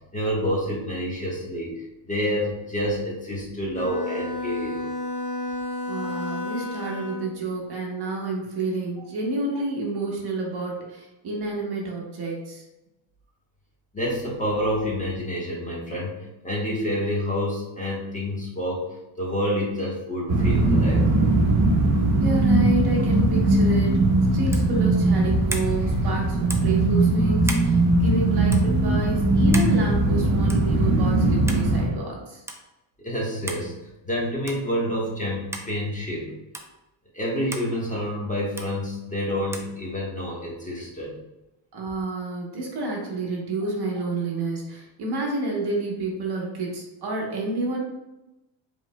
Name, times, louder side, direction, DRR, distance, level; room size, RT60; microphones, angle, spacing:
voice 1, 0.1-4.8 13.9-18.8 19.2-21.1 33.0-33.7 34.0-36.3 37.1-41.1, equal, 15° left, -5 dB, 1.4 m, -28 dB
Bowed string instrument, 3.7-7.4, left 2 dB, 50° left, 1.5 m, -31 dB
voice 2, 5.9-12.6 22.2-24.0 24.3-32.4 41.7-47.8, right 2 dB, 50° right, -2 dB, 1.3 m, -29 dB
sound 1, 20.3-31.9, right 2 dB, 75° right, 1.3 m, -20 dB
sound 2, 24.5-24.7 25.5-25.7 26.5-26.8 27.4-27.7 28.5-28.7 29.5-29.8 30.5-30.7 31.5-31.7 32.5-32.6 33.5-33.7 34.5-34.7 35.5-35.7 36.5-36.7 37.5-37.7 38.6-38.7 39.5-39.7, right 1 dB, 5° right, 0.4 m, -34 dB
5.2 x 3.6 x 2.3 m, 0.95 s
cardioid pair, 105°, 49 cm